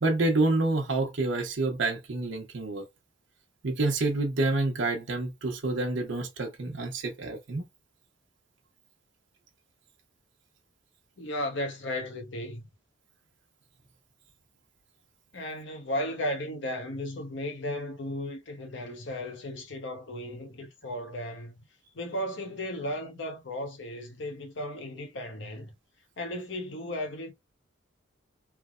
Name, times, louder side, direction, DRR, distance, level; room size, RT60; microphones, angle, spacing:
voice 1, 0.0-2.9 3.6-7.7, right 2 dB, 60° right, 0.8 m, -28 dB
voice 2, 11.2-12.6 15.3-21.5 21.9-25.7 26.2-27.3, left 1 dB, 60° left, 0.7 m, -35 dB
3.2 x 2.1 x 2.3 m
head